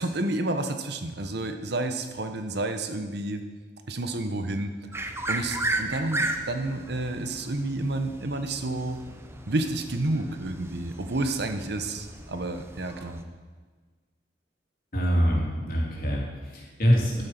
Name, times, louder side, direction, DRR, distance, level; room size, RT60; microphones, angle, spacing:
voice 1, 0.0-3.4 3.9-9.0 9.5-13.2, right 2 dB, 65° right, 7 dB, 1.1 m, -30 dB
sound 1, 4.9-13.2, right 2 dB, 15° right, 0.8 m, -35 dB
voice 2, 14.9-17.2, equal, 50° left, -3 dB, 3.3 m, -24 dB
12.0 x 8.7 x 6.0 m, 1.4 s
head